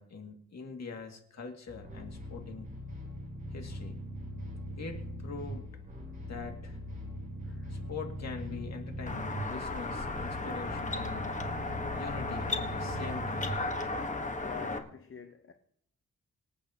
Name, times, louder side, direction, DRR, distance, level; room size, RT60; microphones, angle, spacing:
voice 1, 0.0-2.7 3.5-4.0 4.8-5.7 6.2-6.8 7.7-11.5 11.9-13.6, left 4 dB, 60° left, 2.3 m, -43 dB
sound 1, 1.7-14.1, equal, 25° right, 5.4 m, -41 dB
sound 2, 9.1-14.8, left 3 dB, 25° left, 1.3 m, -35 dB
voice 2, 14.4-15.5, left 6 dB, 45° left, 0.9 m, -46 dB
25.0 x 8.7 x 2.9 m
wide cardioid pair, 130°, 30 cm